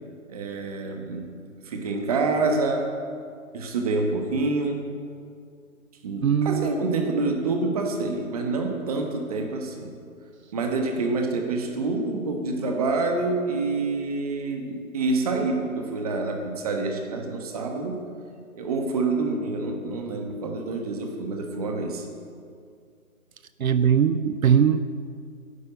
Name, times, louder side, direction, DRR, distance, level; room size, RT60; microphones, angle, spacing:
voice 1, 0.3-1.3 1.6-2.9 3.5-4.8 6.0-9.9 10.5-18.1 18.5-22.0, right 3 dB, 25° right, 4 dB, 1.3 m, -27 dB
voice 2, 6.2-6.7 23.6-24.8, right 8 dB, 75° right, 13 dB, 0.6 m, -20 dB
10.5 x 8.0 x 8.2 m, 2.3 s
hypercardioid pair, 155°, 42 cm